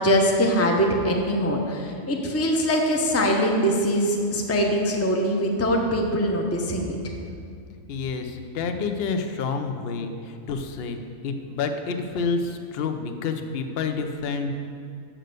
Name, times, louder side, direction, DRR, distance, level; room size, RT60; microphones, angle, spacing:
voice 1, 0.0-6.9, equal, 15° left, 1 dB, 0.6 m, -22 dB
voice 2, 7.9-14.5, left 4 dB, 55° left, 6 dB, 0.8 m, -29 dB
7.6 x 6.5 x 6.6 m, 2.4 s
omnidirectional pair, 1.5 m